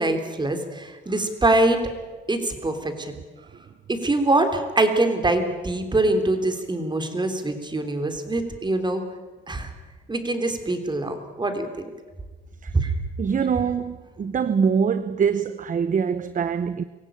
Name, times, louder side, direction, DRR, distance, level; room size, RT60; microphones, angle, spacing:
voice 1, 0.0-1.9 2.3-3.1 3.9-9.0 9.5-9.7 10.1-11.7 12.7-12.9, right 2 dB, 20° right, 3.6 m, -23 dB
voice 2, 13.2-16.8, right 6 dB, 40° right, 0.8 m, -24 dB
24.0 x 16.5 x 9.0 m
cardioid pair, 90°, 20 cm